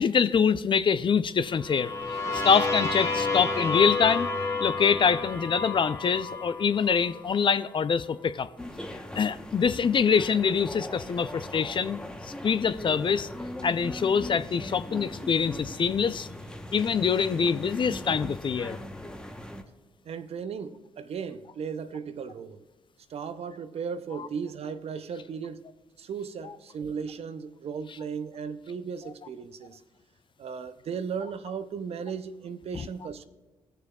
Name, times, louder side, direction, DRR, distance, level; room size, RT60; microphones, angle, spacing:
voice 1, 0.0-4.3 4.6-8.5 9.1-13.3 13.6-16.3 16.7-18.8 32.7-32.9, left 6 dB, 40° left, 0.4 m, -25 dB
sound 1, 1.5-7.4, left 3 dB, 25° left, 1.4 m, -30 dB
sound 2, 8.6-19.6, left 1 dB, 5° left, 1.0 m, -40 dB
voice 2, 20.0-22.6 23.1-25.6 26.0-29.8 30.4-33.2, right 6 dB, 55° right, 0.6 m, -36 dB
18.0 x 6.7 x 2.3 m
hypercardioid pair, 45°, 12 cm